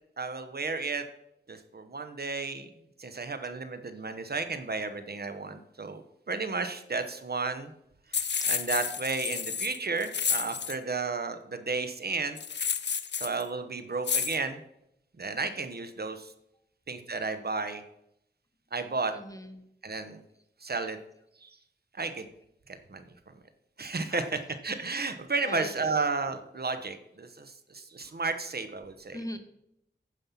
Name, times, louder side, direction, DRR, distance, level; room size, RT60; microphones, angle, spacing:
voice 1, 0.2-1.0 1.5-2.7 3.0-7.7 8.1-12.4 13.2-14.6 15.2-16.3 16.9-17.8 18.7-19.1 19.8-20.2 20.6-21.0 21.4-21.6 21.9-22.3 22.7-23.1 23.8-29.2, right 4 dB, 55° right, 9 dB, 0.9 m, -33 dB
sound 1, 8.1-10.8 12.4-13.4 14.0-14.4, left 6 dB, 70° left, 0.6 m, -30 dB
voice 2, 19.1-19.6 24.1-24.3 25.4-26.0 29.1-29.4, left 1 dB, 20° left, 7 dB, 1.1 m, -40 dB
9.2 x 5.4 x 5.7 m, 0.77 s
wide cardioid pair, 60°, 19 cm